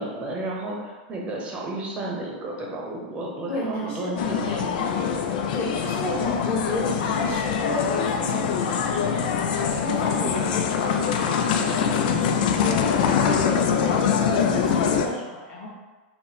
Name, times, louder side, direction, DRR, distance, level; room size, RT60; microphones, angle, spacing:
voice 1, 0.0-4.7, right 2 dB, 25° right, -2 dB, 0.8 m, -32 dB
voice 2, 3.5-4.1 5.5-9.2 9.8-15.7, left 2 dB, 35° left, -4 dB, 1.2 m, -32 dB
sound 1, 4.2-15.1, left 7 dB, 65° left, 0.4 m, -23 dB
4.0 x 2.1 x 4.2 m, 1.3 s
supercardioid pair, 145°, 5 cm